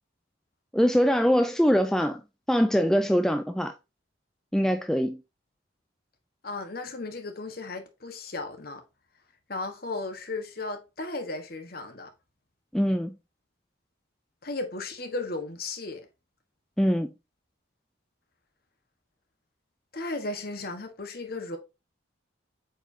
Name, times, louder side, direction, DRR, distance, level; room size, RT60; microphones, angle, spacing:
voice 1, 0.7-2.2 2.5-3.7 4.5-5.2 12.7-13.2 16.8-17.1, equal, 5° left, 0.4 m, -23 dB
voice 2, 6.4-8.8 9.5-12.1 14.4-16.1 19.9-21.6, left 2 dB, 50° left, 1.4 m, -35 dB
7.8 x 4.7 x 2.8 m
head